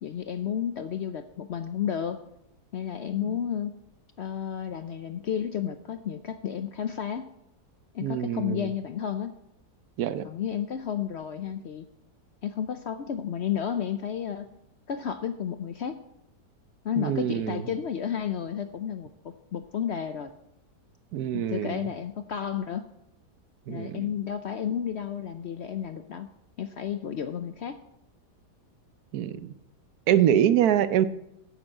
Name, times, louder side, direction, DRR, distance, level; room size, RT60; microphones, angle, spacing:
voice 1, 0.0-2.3 2.7-3.8 4.2-7.3 7.9-9.3 10.2-11.9 12.4-14.5 14.9-16.0 16.8-20.3 21.3-22.9 23.7-26.3 26.6-27.8, left 8 dB, 70° left, 9 dB, 0.6 m, -32 dB
voice 2, 8.0-8.7 10.0-10.2 17.0-17.6 21.1-21.9 23.7-24.1 29.1-29.5 30.1-31.1, right 10 dB, 70° right, 13 dB, 1.1 m, -25 dB
10.0 x 7.1 x 7.5 m, 0.80 s
omnidirectional pair, 1.8 m